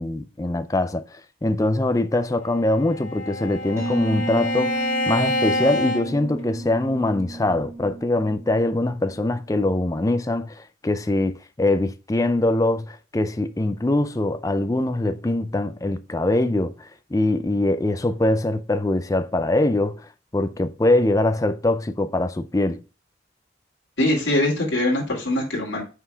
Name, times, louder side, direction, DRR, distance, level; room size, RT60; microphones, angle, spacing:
voice 1, 0.0-22.8, left 2 dB, 15° left, 0.4 m, -23 dB
Bowed string instrument, 2.5-6.9, left 2 dB, 90° left, 2.1 m, -28 dB
sound 1, 3.8-9.3, right 3 dB, 15° right, 1.3 m, -34 dB
voice 2, 24.0-25.8, left 1 dB, 70° left, 2.3 m, -22 dB
5.6 x 4.9 x 3.4 m
head